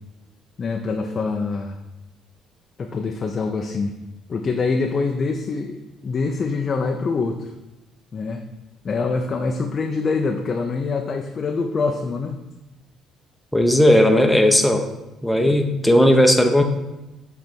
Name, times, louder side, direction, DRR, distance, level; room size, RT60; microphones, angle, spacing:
voice 1, 0.6-1.8 2.8-4.0 4.3-7.5 8.1-8.4 8.8-12.4 15.4-15.6, left 4 dB, 40° left, 3 dB, 0.5 m, -25 dB
voice 2, 13.5-14.8 15.2-16.6, left 1 dB, 5° left, 4 dB, 0.8 m, -16 dB
7.5 x 3.4 x 4.5 m, 1.0 s
supercardioid pair, 85°, 0 cm